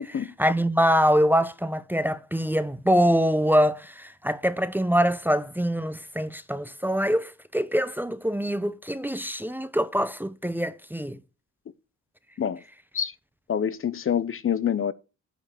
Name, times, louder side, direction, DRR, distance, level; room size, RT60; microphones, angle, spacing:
voice 1, 0.0-11.2, equal, 5° right, 0.6 m, -24 dB
voice 2, 13.5-14.9, left 8 dB, 45° left, 0.7 m, -26 dB
9.7 x 5.1 x 6.5 m
cardioid pair, 95°, 30 cm